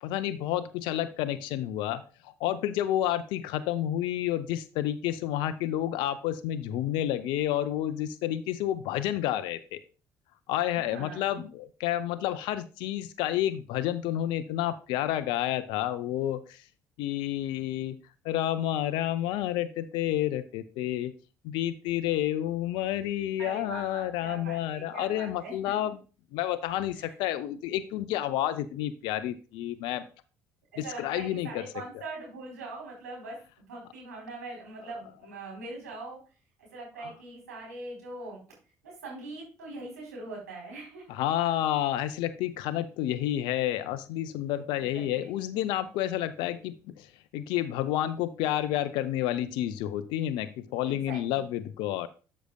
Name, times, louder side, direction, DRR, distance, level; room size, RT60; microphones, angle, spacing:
voice 1, 0.0-9.8 10.5-11.4 11.8-16.6 17.0-18.0 18.2-21.1 21.4-26.0 26.3-30.1 30.8-31.6 37.0-37.1 41.1-52.1, left 12 dB, 65° left, 12 dB, 0.5 m, -30 dB
voice 2, 10.7-11.4 23.4-25.7 26.9-27.1 30.7-36.2 36.7-38.4 38.8-41.1 44.8-45.4 50.9-51.5, right 3 dB, 85° right, -2 dB, 3.8 m, -42 dB
12.5 x 6.4 x 2.3 m, 0.34 s
figure-of-eight pair, 50°, 9 cm